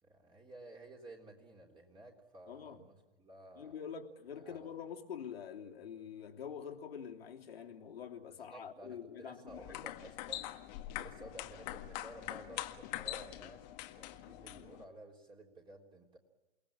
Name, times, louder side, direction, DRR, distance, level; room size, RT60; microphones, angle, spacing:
voice 1, 0.0-3.8 4.3-4.7 8.3-10.5 10.8-13.6 13.9-16.2, right 1 dB, 15° right, 3.8 m, -54 dB
voice 2, 2.5-2.8 3.6-9.9, left 7 dB, 75° left, 3.2 m, -46 dB
sound 1, 9.5-14.8, left 15 dB, 45° left, 1.8 m, -44 dB
29.0 x 19.0 x 8.8 m
hypercardioid pair, 115°, 30 cm